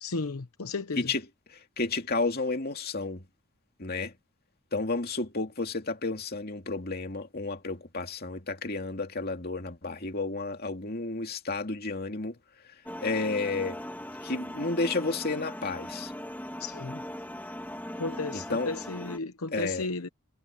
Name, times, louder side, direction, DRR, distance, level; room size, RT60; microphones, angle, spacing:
voice 1, 0.0-1.1 16.6-17.0 18.0-20.1, left 3 dB, 75° left, 0.9 m, -34 dB
voice 2, 1.5-3.2 3.8-4.1 4.7-12.4 13.0-13.8 14.2-16.1 18.3-18.7 19.5-19.9, left 3 dB, 45° left, 2.6 m, -31 dB
sound 1, 12.9-19.2, left 1 dB, 10° left, 2.1 m, -39 dB
head